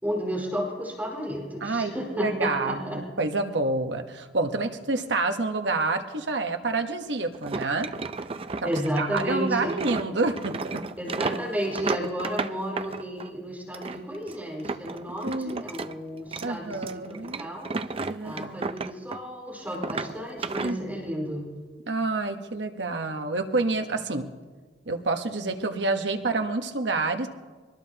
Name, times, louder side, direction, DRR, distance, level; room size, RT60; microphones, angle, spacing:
voice 1, 0.0-3.0 8.6-9.8 11.0-17.7 18.2-21.5, equal, 10° right, -4 dB, 4.8 m, -32 dB
voice 2, 1.6-7.9 8.6-8.7 9.0-10.8 15.2-15.6 16.4-17.4 18.1-18.7 20.6-20.9 21.9-24.3 24.9-27.3, right 3 dB, 75° right, 6 dB, 1.2 m, -28 dB
sound 1, 7.3-13.3 13.7-15.9 16.2-19.4 19.7-20.7, right 3 dB, 35° right, 0.5 m, -33 dB
24.5 x 19.5 x 2.9 m, 1.4 s
head